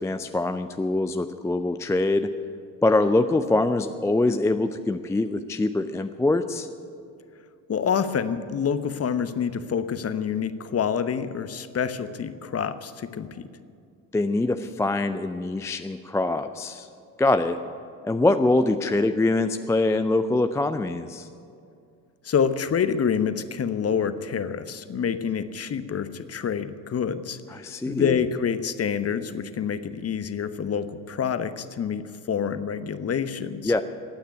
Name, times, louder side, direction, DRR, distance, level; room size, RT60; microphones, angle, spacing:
voice 1, 0.0-2.3 2.8-6.7 14.1-16.9 17.2-17.6 18.0-21.3 27.5-28.2 33.6-33.8, left 2 dB, 5° left, 9 dB, 0.4 m, -24 dB
voice 2, 7.7-13.5 22.2-33.7, left 7 dB, 30° left, 12 dB, 1.0 m, -27 dB
15.5 x 9.3 x 9.3 m, 2.4 s
figure-of-eight pair, 55°, 49 cm